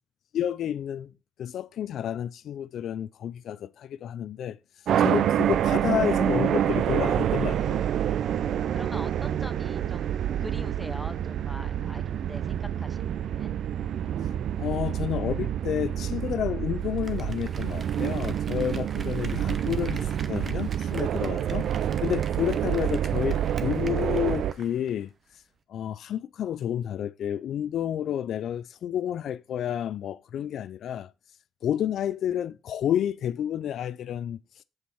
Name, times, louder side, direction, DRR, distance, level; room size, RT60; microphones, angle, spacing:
voice 1, 0.3-1.1 1.4-4.6 5.0-7.9 14.6-21.6 22.0-25.1 25.7-31.1 31.6-34.4, left 10 dB, 70° left, 0.4 m, -30 dB
sound 1, 4.9-24.5, right 10 dB, 70° right, 0.4 m, -27 dB
voice 2, 8.3-10.1 10.4-13.5, equal, ahead, 0.8 m, -43 dB
Applause, 16.8-25.0 25.3-25.4, right 5 dB, 45° right, 0.9 m, -46 dB
8.0 x 4.2 x 7.0 m
cardioid pair, 90°, 0 cm